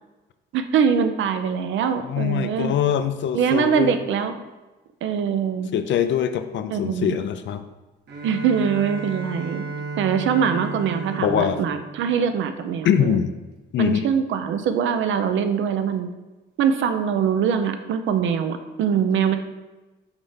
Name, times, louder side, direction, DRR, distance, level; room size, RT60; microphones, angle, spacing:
voice 1, 0.5-2.8 3.3-4.3 5.0-5.7 6.7-7.2 8.2-9.6 10.0-13.2 13.8-16.1 16.6-19.4, right 7 dB, 75° right, 8 dB, 0.6 m, -23 dB
voice 2, 2.0-4.0 5.7-7.6 11.2-11.6 12.8-13.3 13.7-14.1, left 8 dB, 65° left, 10 dB, 0.6 m, -23 dB
Bowed string instrument, 8.1-12.8, right 3 dB, 60° right, 1.2 m, -34 dB
5.8 x 3.4 x 5.7 m, 1.1 s
cardioid pair, 90°, 20 cm